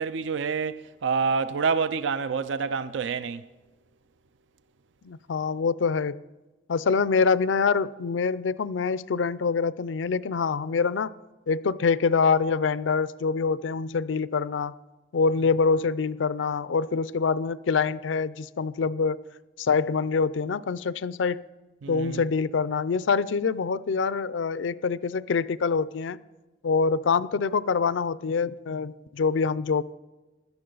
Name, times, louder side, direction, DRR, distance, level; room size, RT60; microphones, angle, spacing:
voice 1, 0.0-3.4 21.8-22.2, right 5 dB, 80° right, 0.4 m, -27 dB
voice 2, 5.0-6.2 6.7-11.1 11.5-14.8 15.1-19.2 19.6-21.4 21.9-26.2 26.6-29.8, left 5 dB, 85° left, 0.4 m, -25 dB
16.5 x 11.5 x 3.9 m
head